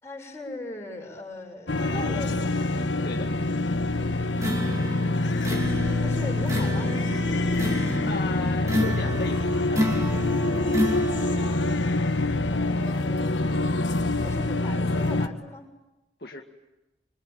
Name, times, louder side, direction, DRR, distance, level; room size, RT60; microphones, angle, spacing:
voice 1, 0.0-2.6 6.0-6.9 12.5-15.7, left 1 dB, 15° left, -1 dB, 6.5 m, -39 dB
sound 1, 1.7-15.3, left 2 dB, 85° left, 1.3 m, -25 dB
sound 2, 4.4-11.6, equal, 15° right, 2.6 m, -31 dB
voice 2, 8.1-10.5 16.2-16.4, left 2 dB, 55° left, 1 dB, 2.0 m, -35 dB
27.0 x 23.5 x 9.1 m, 0.98 s
head